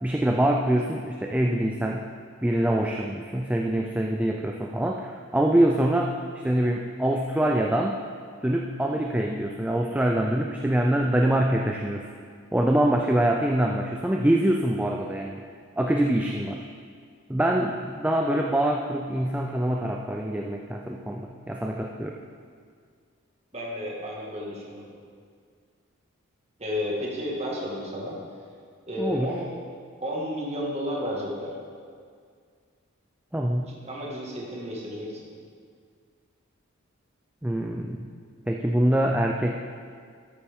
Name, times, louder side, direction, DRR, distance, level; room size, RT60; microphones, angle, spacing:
voice 1, 0.0-2.1 2.4-6.2 6.4-8.0 8.4-12.1 12.5-15.4 15.8-16.7 17.3-22.2 29.0-29.3 33.3-33.7 37.4-38.1 38.5-39.6, right 1 dB, 5° right, 0 dB, 0.4 m, -24 dB
voice 2, 23.5-24.9 26.6-28.2 28.9-29.5 30.0-31.5 33.7-35.2, equal, 30° right, -3 dB, 1.8 m, -32 dB
13.5 x 8.8 x 3.7 m, 2.1 s
head